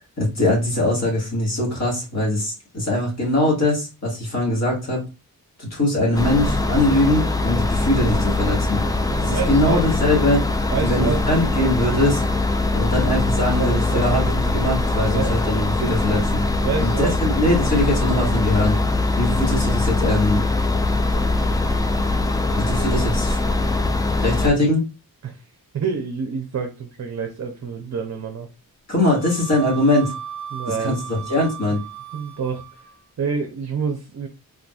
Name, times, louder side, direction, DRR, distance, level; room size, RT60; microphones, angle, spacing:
voice 1, 0.2-5.0 5.6-8.8 9.2-10.4 10.8-12.2 12.7-16.4 16.8-18.8 19.2-20.4 22.5-23.4 24.2-24.9 28.9-30.1 30.8-31.8, left 1 dB, 45° left, -2 dB, 1.8 m, -21 dB
sound 1, 6.1-24.5, left 2 dB, 10° left, 0.3 m, -22 dB
voice 2, 8.9-9.9 10.7-11.2 11.5-11.7 13.6-14.2 14.9-15.5 16.6-17.1 25.2-25.4 25.7-28.5 30.5-31.0 32.1-32.6 33.2-34.3, right 6 dB, 50° right, 4 dB, 0.6 m, -27 dB
Wind instrument woodwind instrument, 29.0-33.1, right 9 dB, 15° right, 1.4 m, -36 dB
3.6 x 2.6 x 2.2 m, 0.30 s
wide cardioid pair, 105°, 36 cm